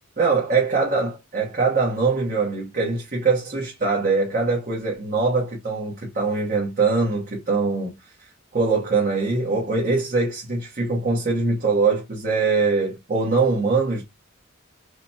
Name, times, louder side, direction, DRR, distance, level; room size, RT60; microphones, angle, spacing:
voice 1, 0.2-7.9 8.5-14.1, right 4 dB, 40° right, 1.2 m, -22 dB
5.0 x 2.3 x 2.8 m
head